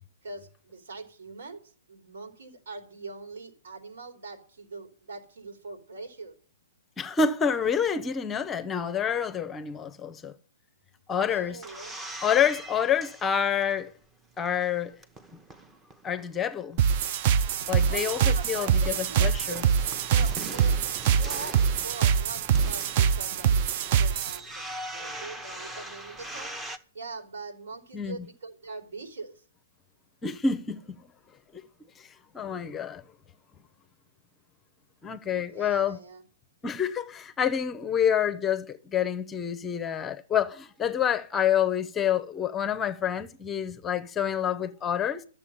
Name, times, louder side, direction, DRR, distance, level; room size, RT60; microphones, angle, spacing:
voice 1, 0.2-6.3 11.2-12.0 17.9-20.8 21.1-23.6 23.8-26.5 26.9-29.4 35.5-36.2, right 3 dB, 70° right, 3.0 m, -42 dB
voice 2, 7.0-10.3 11.1-11.6 12.2-13.9 14.4-15.0 16.0-16.8 17.7-18.7 19.2-19.6 27.9-28.2 30.2-31.0 31.5-31.6 32.0-32.1 32.3-33.0 35.0-36.0 36.6-45.2, left 7 dB, 15° left, 0.7 m, -27 dB
sound 1, 11.1-14.0 14.4-16.4 16.7-16.8 17.0-26.8, right 1 dB, 10° right, 0.9 m, -42 dB
sound 2, 16.8-24.4, right 8 dB, 45° right, 0.6 m, -24 dB
12.0 x 7.1 x 8.6 m
hypercardioid pair, 125°, 0 cm